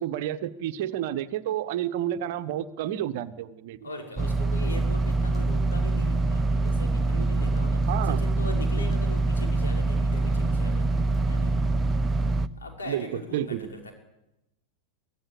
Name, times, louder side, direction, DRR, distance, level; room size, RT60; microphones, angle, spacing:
voice 1, 0.0-3.9 7.9-8.2 11.3-11.4 12.9-13.1 13.3-13.7, right 11 dB, 50° right, 11 dB, 1.1 m, -30 dB
voice 2, 3.8-11.5 12.6-13.9, left 2 dB, 70° left, 1 dB, 5.9 m, -40 dB
sound 1, 4.2-12.5, right 2 dB, 15° right, 0.9 m, -25 dB
24.5 x 16.0 x 8.6 m, 0.92 s
figure-of-eight pair, 90°, 0 cm